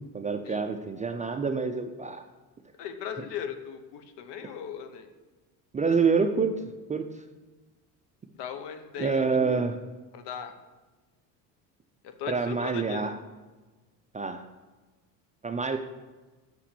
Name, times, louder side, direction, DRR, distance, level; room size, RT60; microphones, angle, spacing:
voice 1, 0.1-2.2 5.7-6.6 6.9-7.1 9.0-9.8 12.3-13.2 14.1-14.4 15.4-15.8, right 5 dB, 15° right, 5 dB, 0.4 m, -27 dB
voice 2, 2.8-5.1 8.3-9.2 10.1-10.5 12.0-13.0, left 8 dB, 60° left, 8 dB, 1.1 m, -37 dB
6.1 x 5.8 x 6.8 m, 1.2 s
hypercardioid pair, 80°, 48 cm